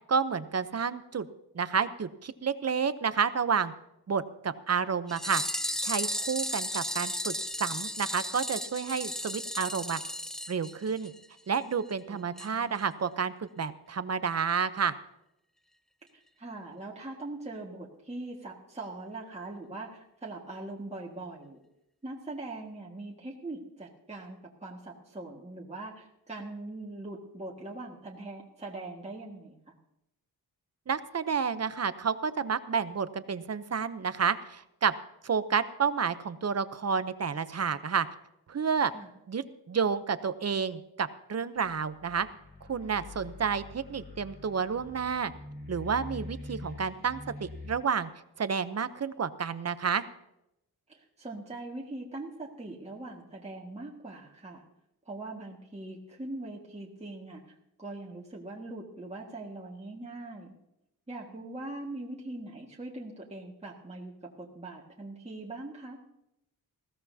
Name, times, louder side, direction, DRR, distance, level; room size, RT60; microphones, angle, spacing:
voice 1, 0.1-1.3 1.5-3.7 4.1-5.4 5.8-10.0 10.5-11.1 11.5-15.0 30.9-34.9 35.2-38.1 38.5-38.9 39.3-42.3 42.7-45.3 45.7-48.1 48.4-50.0, right 6 dB, 40° right, 12 dB, 0.8 m, -30 dB
sound 1, 5.1-11.3 11.5-11.6 11.9-12.0 12.4-12.5 12.8-12.9, left 1 dB, ahead, 0.5 m, -34 dB
voice 2, 12.1-12.8 16.4-21.6 22.0-29.7 38.9-39.1 50.9-54.6 55.0-60.5 61.1-66.0, right 2 dB, 15° right, -3 dB, 1.8 m, -42 dB
sound 2, 41.6-47.7, left 2 dB, 30° left, 3.7 m, -45 dB
20.5 x 15.5 x 2.8 m, 0.86 s
wide cardioid pair, 120°, 39 cm